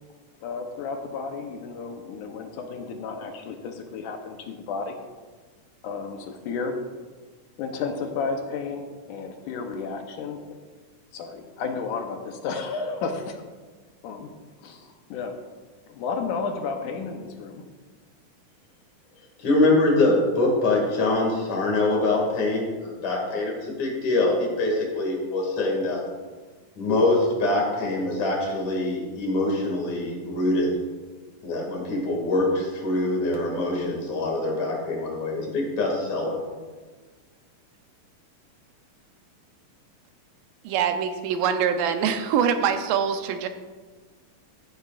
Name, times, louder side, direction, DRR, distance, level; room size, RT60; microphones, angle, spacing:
voice 1, 0.4-5.0 5.8-6.8 7.6-10.6 11.1-13.4 14.0-14.3 14.6-15.4 15.9-17.7, left 4 dB, 75° left, 4 dB, 2.3 m, -32 dB
voice 2, 19.4-26.0 26.8-30.7 31.4-36.4, left 2 dB, 60° left, -1 dB, 3.5 m, -24 dB
voice 3, 40.6-43.5, right 7 dB, 90° right, 7 dB, 2.5 m, -24 dB
14.5 x 10.5 x 2.5 m, 1.4 s
omnidirectional pair, 3.8 m